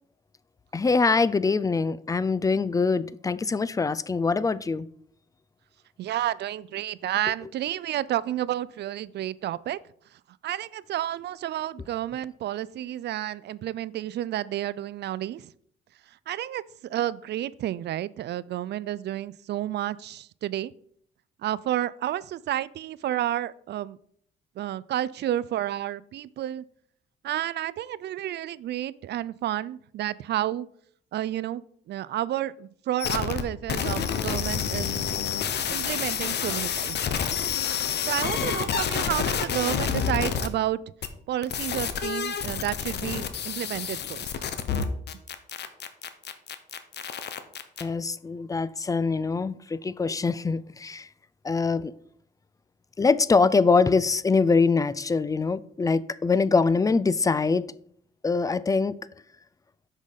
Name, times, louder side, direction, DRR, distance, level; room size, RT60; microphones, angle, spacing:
voice 1, 0.7-4.9 47.8-51.1 51.4-51.9 53.0-57.6 58.2-58.9, left 4 dB, 15° left, 0.4 m, -23 dB
voice 2, 6.0-9.8 10.4-15.5 16.3-20.7 21.4-24.0 24.6-26.6 27.2-30.7 31.1-34.9 35.7-37.2 38.0-40.8 41.3-44.3, right 12 dB, 60° right, 0.4 m, -30 dB
sound 1, 33.0-33.4 33.7-40.5 41.0-41.1 41.4-47.8, left 7 dB, 60° left, 0.9 m, -29 dB
6.2 x 5.0 x 5.6 m
cardioid pair, 90°, 20 cm